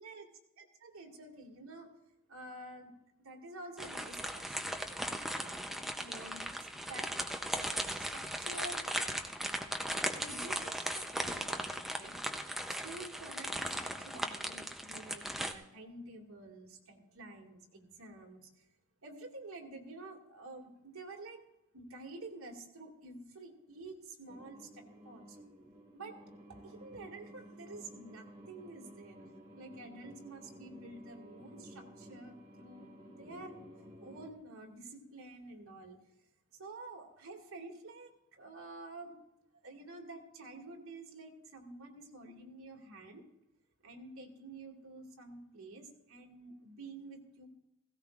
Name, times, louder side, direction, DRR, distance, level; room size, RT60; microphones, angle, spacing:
voice 1, 0.6-1.9 2.3-2.9 3.2-4.7 5.3-7.1 7.5-8.9 9.2-12.2 12.8-18.6 19.0-21.4 21.7-25.4 25.9-26.2 26.5-29.2 29.5-33.5 34.0-36.0 36.5-39.2 39.6-43.2 43.8-47.5, right 2 dB, 80° right, 1 dB, 2.2 m, -49 dB
sound 1, 3.8-15.5, equal, ahead, 0.6 m, -38 dB
sound 2, 24.3-34.3, right 1 dB, 20° right, 1.6 m, -54 dB
16.5 x 16.0 x 2.5 m, 0.88 s
head